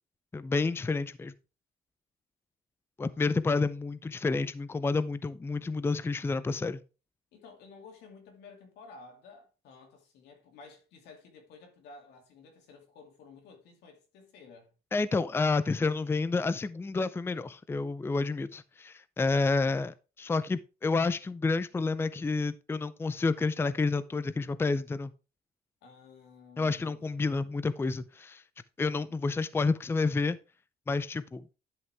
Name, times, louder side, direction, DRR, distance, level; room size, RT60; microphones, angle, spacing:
voice 1, 0.3-1.3 3.0-6.8 14.9-25.1 26.6-28.4 28.8-30.4 30.9-31.4, left 3 dB, 15° left, 0.5 m, -29 dB
voice 2, 7.3-14.7 25.8-27.7, left 4 dB, 80° left, 2.5 m, -53 dB
11.0 x 6.0 x 3.4 m
cardioid pair, 110°, 17 cm